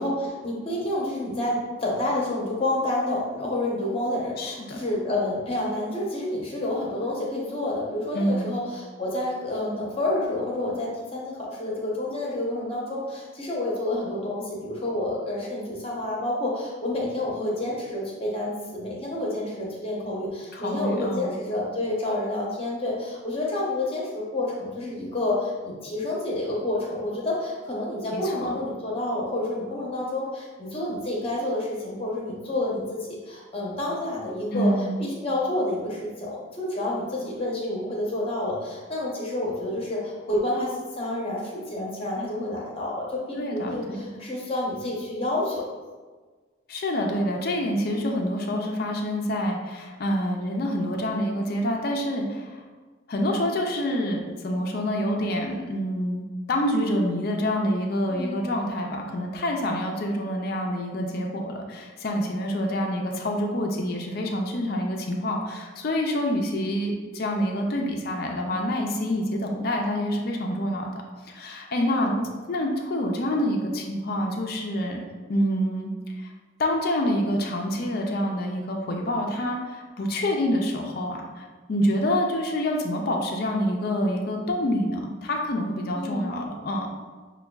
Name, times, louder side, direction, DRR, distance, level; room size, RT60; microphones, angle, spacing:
voice 1, 0.0-34.7 35.0-45.6 58.1-58.4 71.8-72.3 85.9-86.3, left 1 dB, 30° left, -3 dB, 0.7 m, -29 dB
voice 2, 4.4-4.8 8.1-8.5 20.5-21.3 28.1-28.5 34.5-35.0 43.3-44.0 46.7-52.6 53.1-70.9 71.2-72.1 72.5-75.0 75.3-75.9 76.2-76.3 76.6-86.9, equal, 50° left, 1 dB, 0.4 m, -27 dB
6.1 x 2.2 x 2.3 m, 1.4 s
head